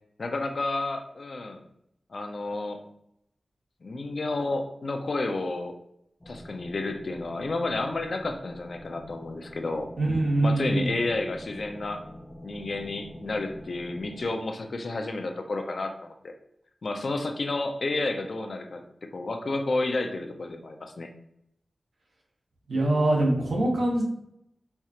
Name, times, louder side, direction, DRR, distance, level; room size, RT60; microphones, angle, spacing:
voice 1, 0.2-1.6 2.1-2.8 3.8-5.8 6.3-9.9 10.4-12.0 12.4-16.3 16.8-18.8 19.1-21.1, left 2 dB, 65° left, 5 dB, 0.5 m, -31 dB
sound 1, 6.2-14.3, left 1 dB, 15° left, 0.7 m, -46 dB
voice 2, 10.0-10.9 22.7-24.0, right 1 dB, 90° right, -2 dB, 1.0 m, -23 dB
4.4 x 2.4 x 2.8 m, 0.77 s
wide cardioid pair, 75°, 0 cm